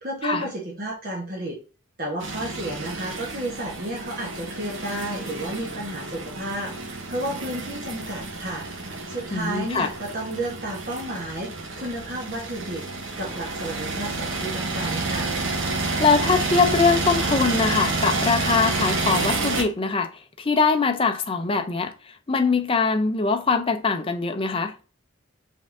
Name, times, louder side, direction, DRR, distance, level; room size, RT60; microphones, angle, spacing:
voice 1, 0.0-1.6 2.0-8.7 9.1-11.5 11.8-12.9 13.2-15.3, right 1 dB, 45° right, 1.2 m, -32 dB
sound 1, 2.2-19.6, right 3 dB, 70° right, 1.0 m, -29 dB
voice 2, 9.3-9.9 16.0-21.9 22.3-24.7, left 4 dB, 25° left, 0.5 m, -22 dB
5.4 x 3.6 x 2.6 m
head